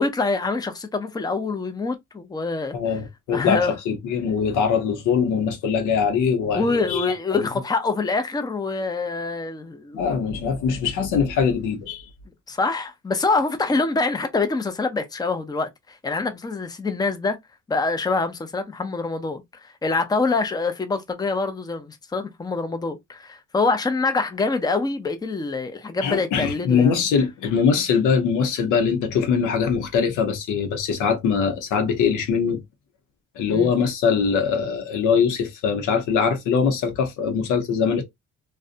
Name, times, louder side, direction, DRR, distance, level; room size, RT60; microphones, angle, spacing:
voice 1, 0.0-3.0 3.3-3.7 6.5-10.0 12.5-17.4 17.7-27.0 33.5-33.7, left 3 dB, 15° left, 0.5 m, -25 dB
voice 2, 2.7-7.5 9.9-12.1 26.0-32.6 33.4-38.0, left 6 dB, 85° left, 0.8 m, -22 dB
2.5 x 2.2 x 2.4 m
cardioid pair, 90°, 30 cm